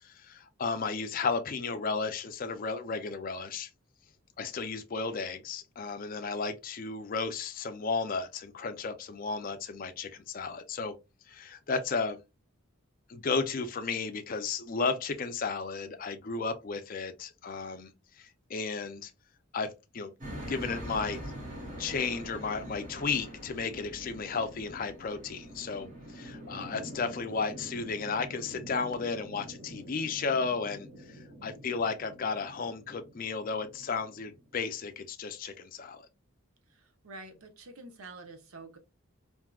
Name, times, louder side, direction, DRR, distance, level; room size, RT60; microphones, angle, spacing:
voice 1, 0.0-3.7 4.4-10.9 11.3-12.2 13.1-17.9 18.2-19.1 19.5-20.1 20.5-21.2 21.8-36.1, left 4 dB, 40° left, 0.4 m, -34 dB
sound 1, 20.2-34.5, right 1 dB, 35° right, 1.1 m, -45 dB
voice 2, 36.7-38.8, right 3 dB, 80° right, 0.7 m, -48 dB
3.5 x 2.6 x 2.2 m
head